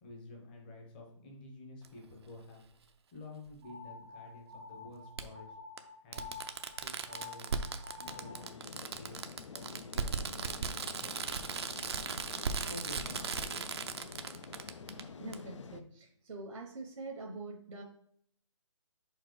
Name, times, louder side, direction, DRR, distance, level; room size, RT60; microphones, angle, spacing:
voice 1, 0.0-2.6 3.1-5.6 6.0-6.4 6.8-9.2 9.5-11.1 12.7-13.7, left 2 dB, 20° left, 1 dB, 0.9 m, -50 dB
Fireworks, 1.8-1.9 3.5-3.6 5.2-5.3 5.8-5.9 6.1-15.0 15.3-15.4, right 5 dB, 50° right, 0.6 m, -37 dB
sound 1, 3.6-8.5, left 4 dB, 10° right, 0.7 m, -49 dB
sound 2, 8.0-15.8, left 5 dB, 60° left, 0.6 m, -48 dB
voice 2, 15.2-17.8, right 3 dB, 65° right, 0 dB, 1.0 m, -44 dB
4.9 x 4.1 x 4.7 m, 0.66 s
hypercardioid pair, 170°, 17 cm